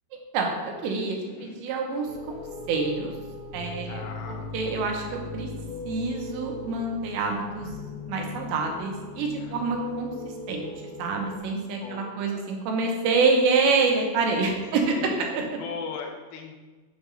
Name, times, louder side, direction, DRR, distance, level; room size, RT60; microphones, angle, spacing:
voice 1, 0.3-3.1 3.5-4.0 4.5-5.5 5.9-7.7 8.1-10.1 10.5-10.7 11.0-14.9 15.3-15.4, right 4 dB, 80° right, 1 dB, 3.1 m, -26 dB
voice 2, 1.2-1.6 3.8-4.6 9.4-9.6 11.5-12.5 14.6-16.6, left 5 dB, 85° left, 2 dB, 3.1 m, -39 dB
sound 1, 2.1-11.4, left 3 dB, 65° left, 3.4 m, -39 dB
7.4 x 3.5 x 6.2 m, 1.3 s
omnidirectional pair, 5.1 m